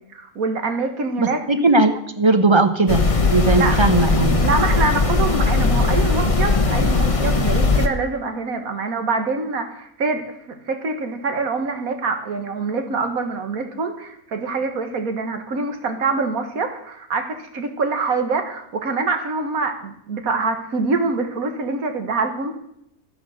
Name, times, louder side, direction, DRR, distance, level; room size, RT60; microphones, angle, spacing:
voice 1, 0.1-1.4 3.6-3.8 4.4-10.4 10.7-22.6, right 4 dB, 80° right, 6 dB, 2.0 m, -25 dB
voice 2, 1.2-3.0 3.3-4.4, right 3 dB, 25° right, 9 dB, 0.9 m, -18 dB
sound 1, 2.9-7.9, left 3 dB, 25° left, 1.0 m, -18 dB
13.5 x 9.8 x 6.5 m, 0.75 s
omnidirectional pair, 1.5 m